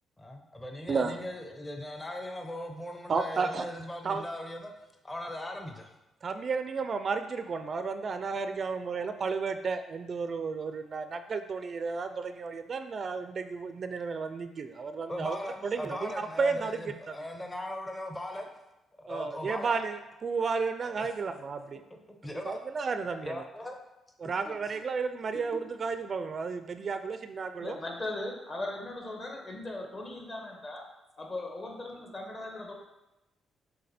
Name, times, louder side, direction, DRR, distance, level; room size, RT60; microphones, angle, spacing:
voice 1, 0.2-4.7 5.0-5.9 15.1-18.5 19.0-19.8 20.9-21.1 22.2-22.6 23.2-23.8 24.4-24.8, left 1 dB, 15° left, 3 dB, 0.8 m, -39 dB
voice 2, 0.9-1.2 3.1-3.7 4.0-4.2 6.2-15.4 15.6-16.9 19.1-21.8 22.4-23.4 24.2-27.8, right 4 dB, 45° right, 9 dB, 0.4 m, -32 dB
voice 3, 27.6-30.8 31.2-32.7, left 2 dB, 35° left, 1 dB, 1.4 m, -38 dB
6.5 x 3.8 x 4.1 m, 0.97 s
cardioid pair, 90°, 0 cm